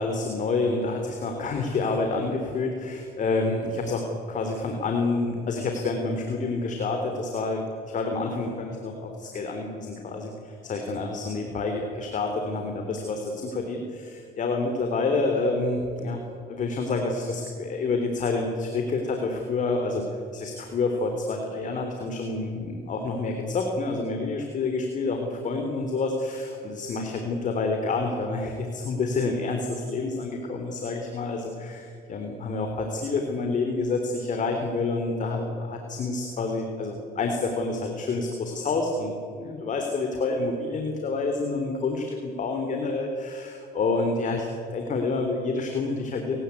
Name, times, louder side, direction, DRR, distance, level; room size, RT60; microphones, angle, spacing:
voice 1, 0.0-16.2 16.5-20.0 20.3-46.4, left 3 dB, 50° left, 4 dB, 3.4 m, -28 dB
28.5 x 17.0 x 9.6 m, 2.5 s
cardioid pair, 110°, 17 cm